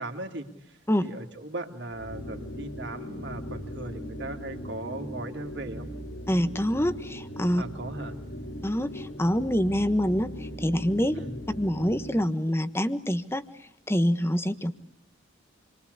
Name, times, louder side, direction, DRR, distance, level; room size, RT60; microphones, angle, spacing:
voice 1, 0.0-5.9 7.5-8.2 11.1-11.4, right 2 dB, 65° right, 4 dB, 3.2 m, -38 dB
sound 1, 1.9-12.3, equal, 80° left, 7.1 m, -39 dB
voice 2, 6.3-7.6 8.6-11.2 11.6-13.4 13.9-14.7, equal, 15° left, 11 dB, 1.3 m, -26 dB
28.5 x 24.0 x 8.5 m, 0.75 s
head